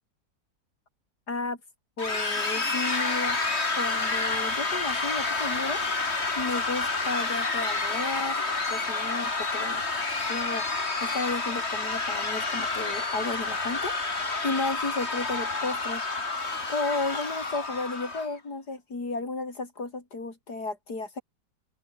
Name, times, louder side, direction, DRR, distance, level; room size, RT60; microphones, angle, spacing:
voice 1, 1.3-1.6 2.0-3.4 3.7-5.8 6.4-9.8 10.3-10.6 11.0-13.9 14.4-16.0 16.7-21.2, left 3 dB, 70° left, 4.8 m, -33 dB
sound 1, 2.0-18.3, left 3 dB, 40° left, 3.0 m, -29 dB
open air
omnidirectional pair, 1.8 m